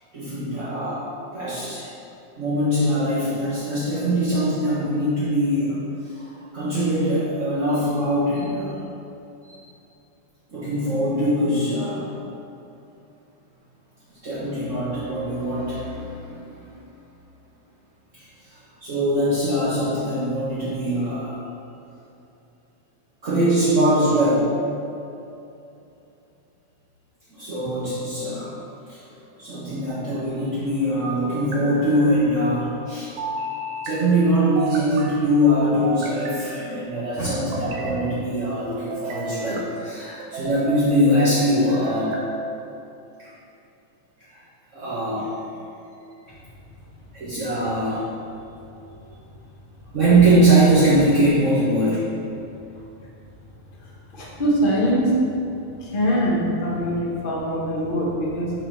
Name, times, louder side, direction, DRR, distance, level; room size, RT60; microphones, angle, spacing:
voice 1, 0.1-1.0 1.3-1.9 2.4-5.8 6.0-8.8 9.5-9.6 10.5-12.0 14.2-16.8 18.1-21.4 23.2-24.5 27.3-28.5 28.9-29.0 29.4-33.1 33.8-42.2 44.3-44.4 44.7-45.6 47.1-48.0 48.9-49.0 49.9-51.9, right 1 dB, 45° right, -11 dB, 1.0 m, -22 dB
sound 1, 27.7-28.3 29.7-30.5 31.3-32.1 33.2-33.9 34.6-35.2 35.8-36.7 37.3-38.0 38.7-39.6 40.2-40.8 41.5-42.3, right 3 dB, 75° right, 2.2 m, -33 dB
voice 2, 54.1-55.2 55.8-58.5, equal, 50° left, -5 dB, 0.6 m, -23 dB
7.9 x 4.2 x 6.2 m, 2.8 s
omnidirectional pair, 3.4 m